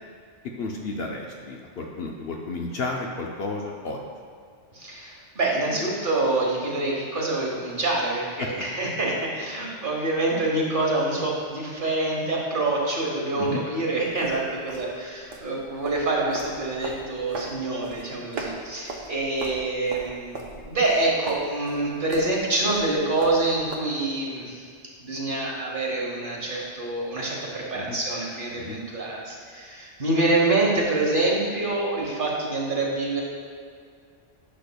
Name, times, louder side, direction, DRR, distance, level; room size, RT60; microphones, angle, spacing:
voice 1, 0.4-4.0 8.4-8.5 13.4-13.6 27.7-28.0 28.5-28.8, left 3 dB, 60° left, 0 dB, 0.8 m, -32 dB
voice 2, 4.7-24.7 25.0-33.2, right 2 dB, 45° right, -3 dB, 1.2 m, -26 dB
sound 1, 14.0-23.8, right 3 dB, 85° right, 1.2 m, -38 dB
10.0 x 6.7 x 2.2 m, 2.1 s
omnidirectional pair, 1.2 m